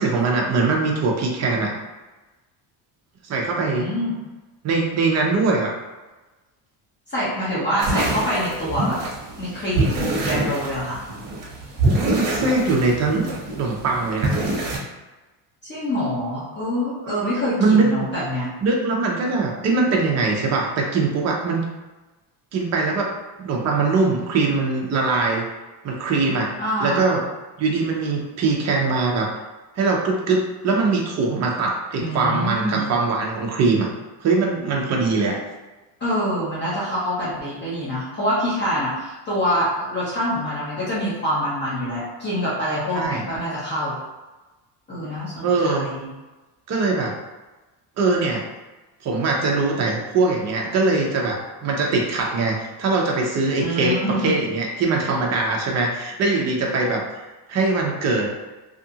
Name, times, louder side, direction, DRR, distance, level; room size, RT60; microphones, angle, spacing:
voice 1, 0.0-1.7 3.3-3.9 4.6-5.7 11.9-13.2 13.5-14.4 17.2-17.3 17.6-17.9 18.6-21.6 22.5-23.1 23.4-25.5 25.8-26.5 26.8-27.2 27.6-29.3 29.8-33.9 34.2-35.4 42.9-43.2 45.4-45.9 46.7-47.2 48.0-48.4 49.0-57.1 57.5-58.3, right 3 dB, 35° right, 0 dB, 0.5 m, -22 dB
voice 2, 3.6-4.1 7.1-9.0 9.4-11.0 15.6-18.5 26.6-27.0 32.0-32.9 36.0-44.0 44.9-46.1 53.6-54.3, equal, 25° left, -9 dB, 0.7 m, -25 dB
sound 1, 7.8-14.8, right 2 dB, 65° right, 1.0 m, -25 dB
2.7 x 2.4 x 2.7 m, 1.1 s
cardioid pair, 160°, 48 cm